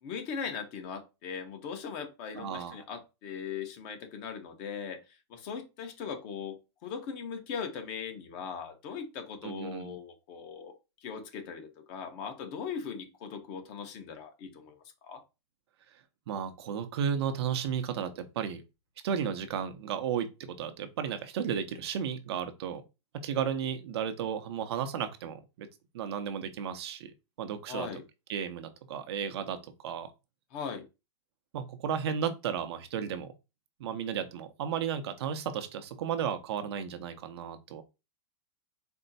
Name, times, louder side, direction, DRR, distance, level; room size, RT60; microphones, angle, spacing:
voice 1, 0.0-5.0 5.3-6.6 6.8-10.7 11.0-15.2 27.7-28.0 30.5-30.9, left 6 dB, 40° left, 1.0 m, -39 dB
voice 2, 2.4-2.8 9.4-10.0 16.3-18.6 19.0-22.8 23.2-25.7 25.9-27.1 27.4-27.9 28.3-29.6 29.8-30.1 31.5-33.3 33.8-37.8, right 8 dB, 65° right, 0.7 m, -34 dB
4.4 x 2.1 x 4.0 m
supercardioid pair, 145°, 15 cm